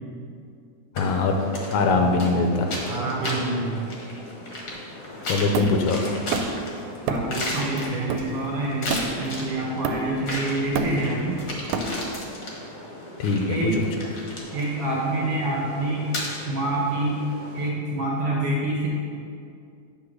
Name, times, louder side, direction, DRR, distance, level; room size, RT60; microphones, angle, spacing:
sound 1, 0.9-17.7, left 1 dB, 50° left, 1.3 m, -35 dB
voice 1, 1.0-1.4 1.7-2.7 5.2-6.0 13.2-13.6, left 3 dB, 80° left, 4 dB, 2.0 m, -22 dB
voice 2, 2.9-3.9 7.1-11.4 13.5-13.8 14.5-16.1 16.4-17.2 17.5-18.9, right 2 dB, 65° right, -3 dB, 1.5 m, -27 dB
Hammer, 5.5-6.7 7.1-7.4 7.8-9.4 9.8-10.3 10.6-12.3, right 4 dB, 80° right, 1.9 m, -29 dB
9.7 x 3.6 x 6.3 m, 2.4 s
omnidirectional pair, 3.4 m